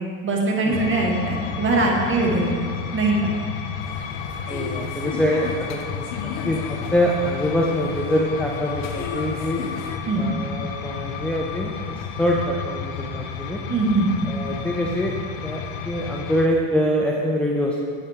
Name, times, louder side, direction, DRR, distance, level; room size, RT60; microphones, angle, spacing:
voice 1, 0.2-2.6 2.9-3.3 10.1-10.3 13.7-14.1, right 2 dB, 30° right, -2 dB, 2.0 m, -21 dB
sound 1, 0.7-16.5, left 7 dB, 75° left, 0.9 m, -32 dB
sound 2, 3.8-10.0, left 7 dB, 45° left, 0.8 m, -36 dB
voice 2, 4.5-5.9 6.2-9.6 10.2-13.6 14.3-15.2 15.4-17.8, equal, 5° left, -2 dB, 0.6 m, -24 dB
8.6 x 7.8 x 3.6 m, 2.1 s
supercardioid pair, 110°, 39 cm